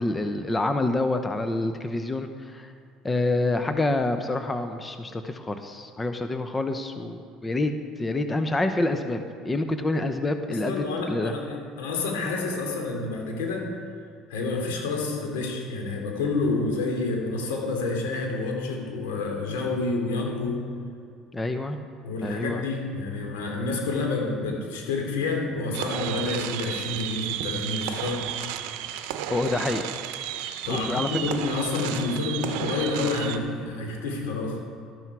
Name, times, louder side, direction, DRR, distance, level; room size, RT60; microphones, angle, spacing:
voice 1, 0.0-2.7 3.0-7.7 8.0-9.2 9.4-11.3 21.3-21.8 22.2-22.6 29.3-29.8 30.7-31.2, left 2 dB, 20° left, 8 dB, 0.9 m, -27 dB
voice 2, 10.5-13.7 14.3-20.6 22.0-28.2 30.6-34.6, left 3 dB, 85° left, 1 dB, 2.8 m, -29 dB
sound 1, 25.7-33.4, right 11 dB, 75° right, 0.8 m, -33 dB
12.5 x 11.5 x 4.8 m, 2.5 s
supercardioid pair, 80°, 0 cm